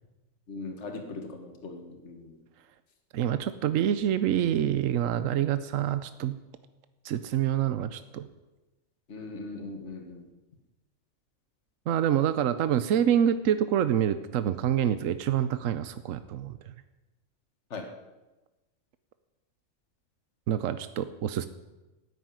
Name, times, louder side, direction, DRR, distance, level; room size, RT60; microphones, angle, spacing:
voice 1, 0.5-2.3 9.1-10.3 17.7-17.8, left 3 dB, 60° left, 4 dB, 1.9 m, -39 dB
voice 2, 3.1-6.4 7.0-8.3 11.9-16.6 20.5-21.5, right 10 dB, 80° right, 12 dB, 1.1 m, -26 dB
14.0 x 9.8 x 9.5 m, 1.1 s
omnidirectional pair, 1.4 m